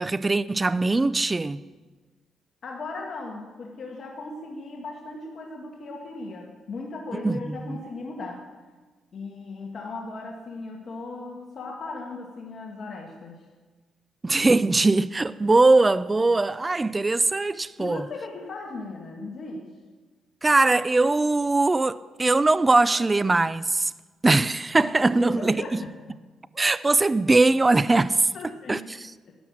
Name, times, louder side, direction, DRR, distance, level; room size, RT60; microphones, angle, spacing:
voice 1, 0.0-1.6 7.1-7.8 14.2-18.0 20.4-23.9 24.2-25.8 26.6-28.3 28.7-29.1, right 3 dB, 20° right, 0.4 m, -21 dB
voice 2, 2.6-8.4 9.1-13.5 17.8-19.7 24.8-26.2 28.3-28.9 29.3-29.4, left 3 dB, 50° left, 1.7 m, -37 dB
12.0 x 11.0 x 7.4 m
cardioid pair, 90°, 0 cm